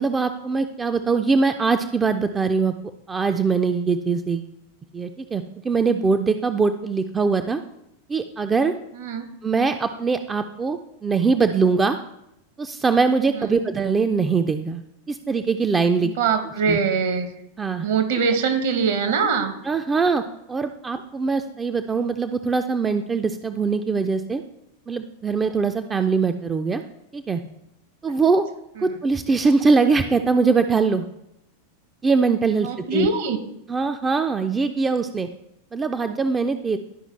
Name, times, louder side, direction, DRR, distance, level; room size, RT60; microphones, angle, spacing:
voice 1, 0.0-2.7 3.1-4.5 4.9-7.6 8.1-8.7 9.4-12.0 12.6-14.8 15.1-16.1 16.7-16.8 17.6-17.9 19.7-20.2 20.5-24.4 24.9-26.8 27.1-27.4 28.0-28.4 28.8-31.0 32.0-33.1 33.7-35.3 35.7-36.8, right 4 dB, 15° right, 7 dB, 0.4 m, -22 dB
voice 2, 8.9-9.2 13.4-13.6 16.0-17.3 17.8-19.5 28.8-29.0 32.6-33.4, right 5 dB, 55° right, 7 dB, 1.0 m, -23 dB
11.5 x 5.0 x 3.2 m, 0.82 s
figure-of-eight pair, 90°, 0 cm